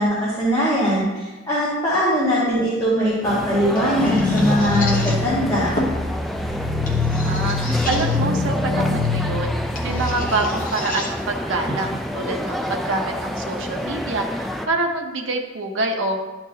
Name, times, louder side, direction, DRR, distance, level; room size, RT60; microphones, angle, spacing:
voice 1, 0.0-5.7, equal, 20° left, -9 dB, 1.6 m, -21 dB
sound 1, 2.9-13.9, left 1 dB, 40° left, 1.2 m, -34 dB
sound 2, 3.2-14.7, equal, ahead, 0.4 m, -29 dB
sound 3, 4.0-10.1, left 3 dB, 75° left, 1.1 m, -24 dB
voice 2, 7.2-9.6 9.8-16.2, right 2 dB, 80° right, 2 dB, 0.9 m, -26 dB
12.0 x 4.5 x 2.8 m, 1.2 s
head